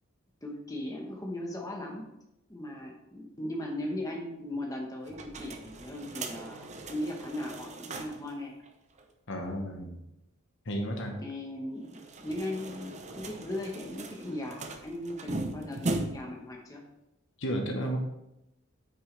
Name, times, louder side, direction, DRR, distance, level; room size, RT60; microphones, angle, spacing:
voice 1, 0.4-2.0 2.5-8.5 11.2-16.8, left 1 dB, 15° left, 0 dB, 1.1 m, -38 dB
sound 1, 5.1-8.3 8.6-8.7 9.0-9.1 11.8-16.4, right 2 dB, 30° right, 0.7 m, -39 dB
voice 2, 9.3-10.0 10.7-11.2 17.4-18.0, equal, 60° left, 3 dB, 1.1 m, -32 dB
8.9 x 6.1 x 3.3 m, 0.88 s
head